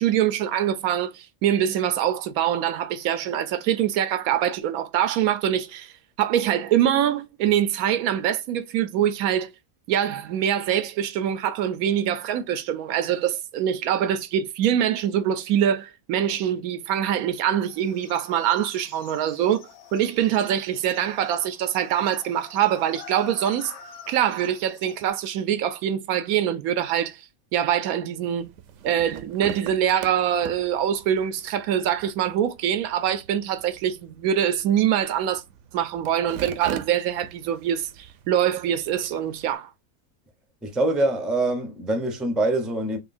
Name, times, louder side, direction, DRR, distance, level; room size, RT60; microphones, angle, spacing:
voice 1, 0.0-5.9 6.2-9.5 9.9-23.7 24.1-27.2 27.5-28.5 28.8-35.4 35.7-39.7, right 10 dB, 85° right, 1.1 m, -24 dB
sound 1, 17.7-25.1, left 7 dB, 75° left, 1.3 m, -47 dB
sound 2, 28.4-39.6, right 9 dB, 65° right, 0.8 m, -43 dB
voice 2, 40.6-43.0, right 2 dB, ahead, 0.4 m, -24 dB
5.5 x 2.3 x 2.5 m
omnidirectional pair, 1.5 m